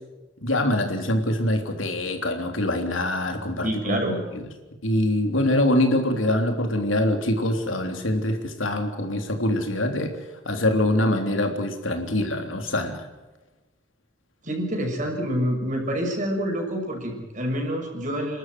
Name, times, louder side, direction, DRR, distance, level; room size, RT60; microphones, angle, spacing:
voice 1, 0.4-4.0 4.3-4.4 4.8-10.1 10.4-13.0, left 1 dB, 85° left, 4 dB, 3.4 m, -24 dB
voice 2, 3.6-4.2 14.4-18.4, equal, 40° right, 2 dB, 6.6 m, -27 dB
29.5 x 13.0 x 9.3 m, 1.1 s
head